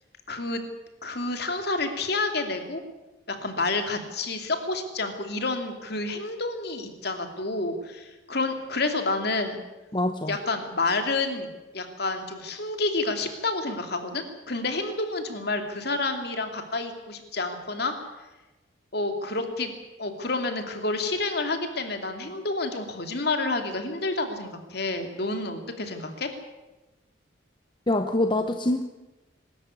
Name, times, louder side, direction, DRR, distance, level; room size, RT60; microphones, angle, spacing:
voice 1, 0.3-0.6 1.0-2.8 3.3-9.6 10.2-11.5 11.7-17.9 18.9-19.7 20.0-26.3, left 3 dB, 55° left, 6 dB, 2.7 m, -29 dB
voice 2, 9.9-10.4 27.9-28.8, left 1 dB, 25° left, 7 dB, 0.9 m, -25 dB
23.0 x 13.5 x 9.7 m, 1.1 s
head